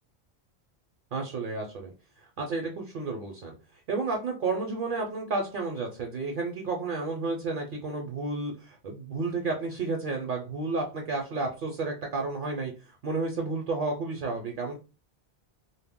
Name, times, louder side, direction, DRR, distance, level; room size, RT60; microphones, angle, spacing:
voice 1, 1.1-1.9 2.2-3.5 3.9-14.7, right 3 dB, 60° right, 2 dB, 0.6 m, -31 dB
2.1 x 2.1 x 3.4 m, 0.32 s
omnidirectional pair, 1.1 m